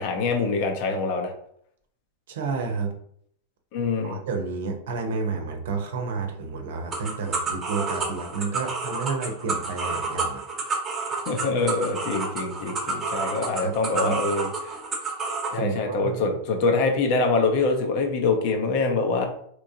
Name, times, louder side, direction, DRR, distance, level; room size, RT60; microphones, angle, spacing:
voice 1, 0.0-1.3 3.7-4.2 11.3-14.7 15.5-19.2, left 3 dB, 55° left, 3 dB, 0.8 m, -24 dB
voice 2, 2.3-2.9 4.0-10.5 13.6-13.7 14.0-14.2 15.5-16.2, right 4 dB, 70° right, 4 dB, 0.8 m, -30 dB
sound 1, 6.9-15.6, right 4 dB, 25° right, 1.0 m, -29 dB
3.6 x 3.0 x 2.7 m, 0.66 s
hypercardioid pair, 105°, 0 cm